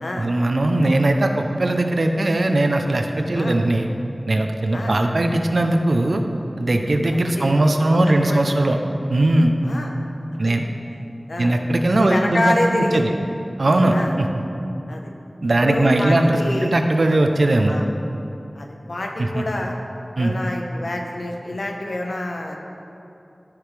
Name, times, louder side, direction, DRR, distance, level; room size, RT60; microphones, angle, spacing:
voice 1, 0.2-3.9 4.3-6.2 6.6-8.8 9.1-9.5 10.4-10.7 11.4-13.1 13.6-14.4 15.4-17.7 20.2-20.4, right 1 dB, 75° right, 4 dB, 0.6 m, -19 dB
voice 2, 7.1-8.4 9.6-9.9 10.4-10.5 11.3-11.6 12.0-13.1 13.9-14.1 14.9-15.1 15.6-16.8 17.7-17.9 18.5-19.8 20.2-22.6, left 1 dB, 85° left, 1 dB, 0.9 m, -27 dB
13.5 x 5.0 x 3.3 m, 2.7 s
wide cardioid pair, 65°, 0 cm